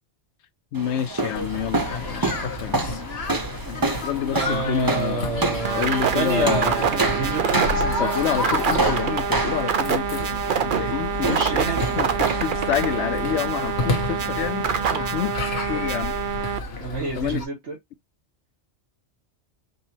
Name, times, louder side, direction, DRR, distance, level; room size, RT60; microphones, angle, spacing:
voice 1, 0.7-3.0 4.0-5.3 5.7-6.7 7.8-10.3 10.6-11.4 12.0-15.4 15.7-16.1 17.2-17.4, left 10 dB, 85° left, 0.9 m, -28 dB
sound 1, 0.7-15.0, right 3 dB, 20° right, 0.7 m, -29 dB
sound 2, 1.3-17.4, left 2 dB, 65° left, 1.5 m, -31 dB
voice 2, 4.3-8.2 10.8-10.9 11.2-12.4 16.8-17.8, right 4 dB, 85° right, 2.2 m, -29 dB
sound 3, 5.6-16.6, right 7 dB, 50° right, 0.8 m, -26 dB
5.4 x 2.9 x 2.8 m
omnidirectional pair, 1.2 m